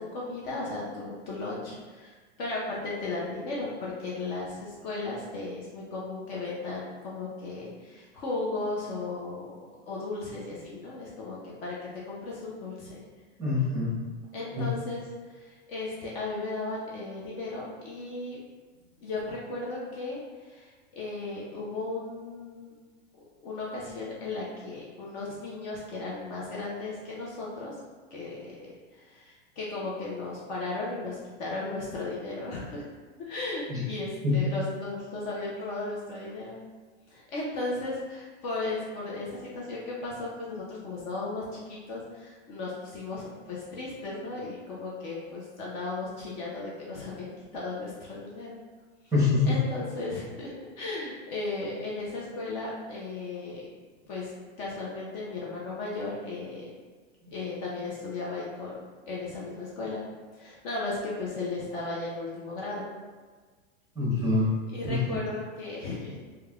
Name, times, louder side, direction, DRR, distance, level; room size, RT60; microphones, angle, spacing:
voice 1, 0.0-9.6 9.9-13.0 14.3-15.0 15.4-18.4 19.0-22.7 23.4-27.7 28.1-28.7 28.9-32.8 33.3-36.6 37.1-47.3 47.5-48.6 49.4-50.5 50.8-53.7 54.1-54.3 54.6-56.7 57.3-60.0 60.3-62.8 64.7-66.2, left 3 dB, 40° left, -5 dB, 0.6 m, -35 dB
voice 2, 13.4-13.9 14.5-14.7 33.7-33.8 34.2-34.3 49.1-49.5 63.9-64.5 64.9-65.2, left 3 dB, 10° right, -8 dB, 0.8 m, -25 dB
3.0 x 2.3 x 2.3 m, 1.4 s
supercardioid pair, 140°, 35 cm